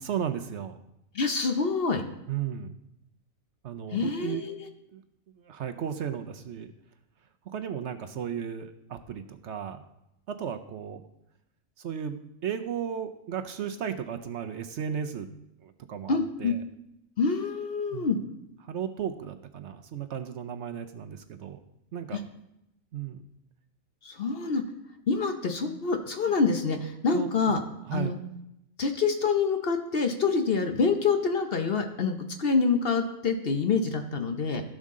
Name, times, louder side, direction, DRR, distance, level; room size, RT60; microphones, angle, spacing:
voice 1, 0.0-0.8 2.3-2.7 3.6-4.4 4.9-5.0 5.4-6.7 7.5-9.8 10.3-11.0 11.8-12.2 12.4-15.3 15.6-16.6 17.9-18.1 18.6-21.6 21.9-22.2 22.9-23.2 27.1-27.3 27.9-28.1, right 8 dB, 65° right, 8 dB, 0.9 m, -34 dB
voice 2, 1.1-2.0 3.9-4.7 16.1-16.5 17.2-18.2 22.1-22.2 24.0-24.6 25.1-27.6 27.9-28.2 28.8-34.6, left 4 dB, 50° left, 6 dB, 1.0 m, -26 dB
15.5 x 6.4 x 3.7 m, 0.86 s
omnidirectional pair, 1.4 m